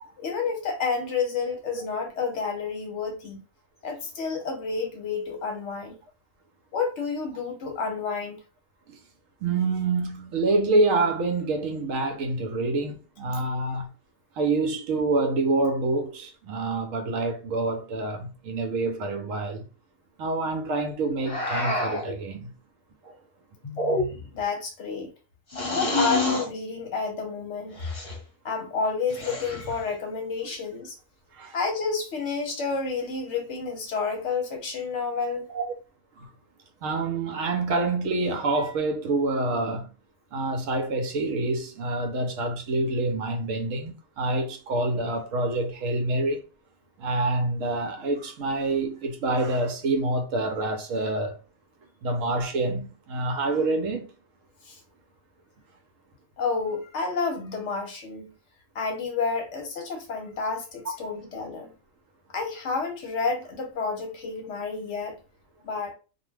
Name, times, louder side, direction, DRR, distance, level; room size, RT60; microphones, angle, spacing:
voice 1, 0.2-3.4 3.8-5.9 6.7-8.4 24.3-25.1 25.7-27.8 28.4-30.9 31.5-35.5 54.6-54.8 56.4-58.3 58.7-61.7 62.3-65.2 65.6-65.9, left 4 dB, 65° left, 0.9 m, -30 dB
voice 2, 9.4-13.9 14.4-19.6 20.2-22.5 23.0-23.2 26.1-26.2 31.3-31.5 35.5-35.7 36.2-36.3 36.8-39.9 40.3-46.4 47.0-51.4 52.0-54.1, right 2 dB, 75° right, 0.9 m, -27 dB
sound 1, 21.2-22.1 23.6-24.4 25.5-26.5 27.8-28.2 29.1-29.8, left 2 dB, 25° left, 1.0 m, -28 dB
2.4 x 2.1 x 3.2 m
omnidirectional pair, 1.4 m